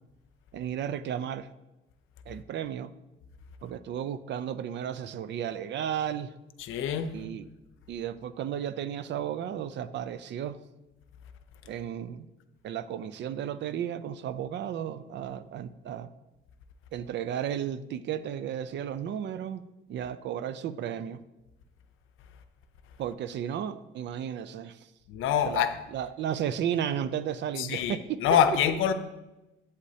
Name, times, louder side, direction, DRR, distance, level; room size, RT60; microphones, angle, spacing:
voice 1, 0.5-1.5 2.3-2.9 3.6-6.3 7.1-7.5 7.9-10.6 11.7-12.3 12.6-16.1 16.9-19.6 19.9-21.2 23.0-24.9 25.4-28.4, right 9 dB, 65° right, 0.5 m, -34 dB
voice 2, 6.6-7.1 25.1-25.7 27.6-28.9, left 9 dB, 85° left, 0.6 m, -25 dB
8.2 x 8.1 x 2.8 m
cardioid pair, 90°, 20 cm